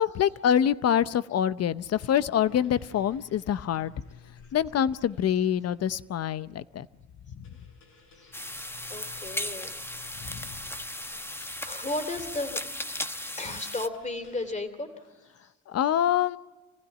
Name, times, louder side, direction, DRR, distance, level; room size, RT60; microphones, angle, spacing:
voice 1, 0.0-3.9 4.5-6.9 10.3-10.4 15.7-16.4, left 9 dB, 55° left, 16 dB, 0.7 m, -25 dB
sound 1, 2.4-14.5, left 5 dB, 80° left, 6.7 m, -55 dB
sound 2, 8.3-13.9, left 1 dB, 10° left, 0.9 m, -36 dB
voice 2, 8.9-11.3 11.6-12.7 13.2-15.3, left 2 dB, 25° left, 8 dB, 3.1 m, -36 dB
26.0 x 16.0 x 9.9 m, 1.2 s
cardioid pair, 90°, 30 cm